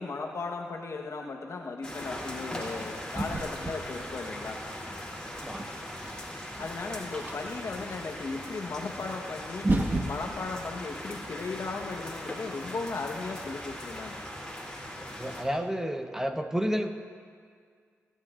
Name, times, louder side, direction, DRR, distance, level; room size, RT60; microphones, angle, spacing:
voice 1, 0.0-4.6 6.6-9.7 10.0-14.2, left 3 dB, 65° left, 2 dB, 1.2 m, -36 dB
sound 1, 1.8-15.4, left 1 dB, 15° left, 3.0 m, -40 dB
sound 2, 3.1-4.4 5.2-7.7 9.1-9.2 9.5-11.7, right 2 dB, 35° right, 1.3 m, -33 dB
voice 2, 5.3-5.6 7.2-7.3 15.0-16.9, equal, 10° right, 5 dB, 1.1 m, -31 dB
27.0 x 10.0 x 2.5 m, 2.1 s
cardioid pair, 45°, 5 cm